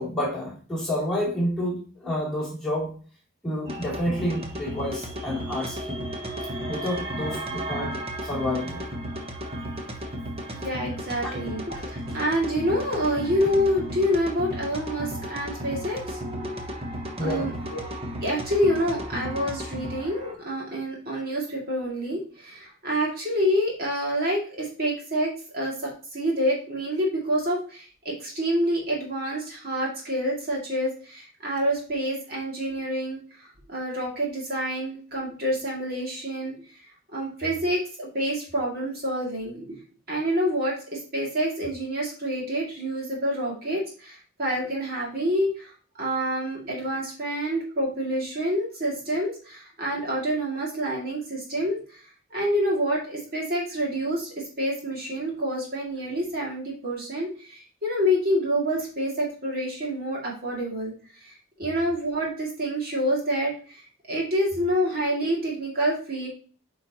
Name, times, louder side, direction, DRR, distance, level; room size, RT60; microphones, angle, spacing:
voice 1, 0.0-2.9 3.4-6.1 6.7-8.9 11.2-11.4 17.2-17.5, left 1 dB, 5° left, -7 dB, 2.8 m, -29 dB
sound 1, 3.7-20.3, equal, 30° right, 1.1 m, -34 dB
voice 2, 10.5-16.2 16.6-16.7 17.2-17.8 18.2-36.5 37.1-39.8 40.1-45.7 46.0-52.0 52.3-63.8 64.1-66.3, equal, 50° right, -3 dB, 2.2 m, -27 dB
8.7 x 4.6 x 2.8 m, 0.41 s
head